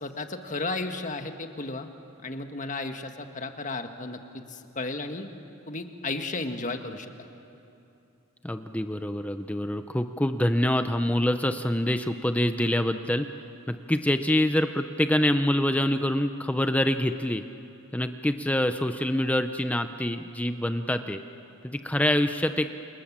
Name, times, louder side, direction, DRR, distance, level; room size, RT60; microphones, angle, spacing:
voice 1, 0.0-1.9 2.2-5.3 5.7-7.3, left 3 dB, 35° left, 6 dB, 1.5 m, -34 dB
voice 2, 8.4-13.3 13.7-17.4 17.9-21.2 21.6-22.7, left 1 dB, 5° left, 8 dB, 0.6 m, -25 dB
28.5 x 28.5 x 7.4 m, 2.8 s
head